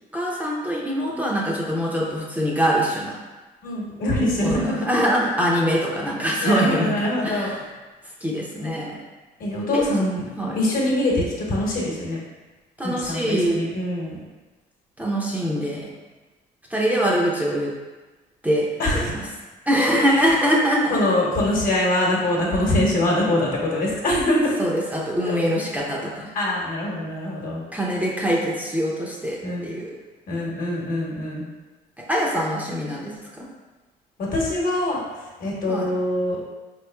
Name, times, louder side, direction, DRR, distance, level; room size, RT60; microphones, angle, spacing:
voice 1, 0.1-3.2 4.4-7.6 8.2-9.0 9.7-9.8 10.4-10.6 12.8-13.6 15.0-15.9 16.7-17.7 18.4-19.3 19.7-21.0 24.6-26.3 27.7-30.0 32.0-33.5 35.7-35.9, equal, 10° right, -4 dB, 0.5 m, -23 dB
voice 2, 3.6-4.9 6.4-7.6 9.4-10.2 10.5-12.2 12.8-14.2 18.8-19.1 20.0-20.3 20.9-24.5 25.2-25.4 26.3-27.6 29.4-29.7 30.3-31.5 34.2-35.0 35.4-36.4, left 1 dB, 60° left, -3 dB, 1.1 m, -24 dB
4.2 x 3.0 x 2.2 m, 1.2 s
cardioid pair, 110°, 17 cm